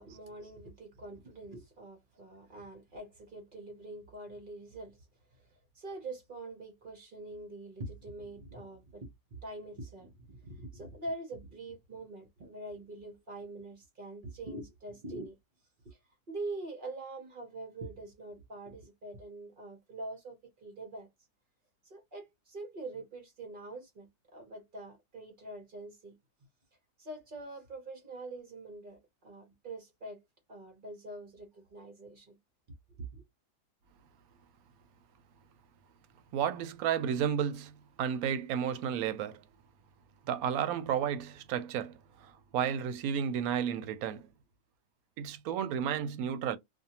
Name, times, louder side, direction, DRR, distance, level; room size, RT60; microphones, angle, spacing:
voice 1, 0.0-9.1 9.4-15.4 15.8-16.0 16.3-21.1 21.8-26.1 27.0-30.2 30.5-32.4 33.1-33.2, right 2 dB, 50° right, 0.6 m, -44 dB
voice 2, 36.3-39.4 40.3-44.3 45.2-46.6, right 8 dB, 70° right, 0.9 m, -32 dB
2.6 x 2.3 x 2.7 m
omnidirectional pair, 1.7 m